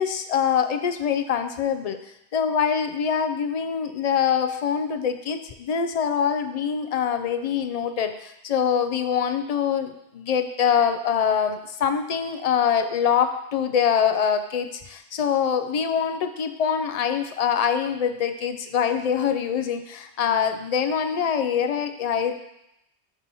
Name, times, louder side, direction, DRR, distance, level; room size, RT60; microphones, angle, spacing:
voice 1, 0.0-2.0 2.3-22.3, left 7 dB, 60° left, 8 dB, 0.4 m, -24 dB
8.0 x 3.0 x 5.4 m, 0.82 s
omnidirectional pair, 1.1 m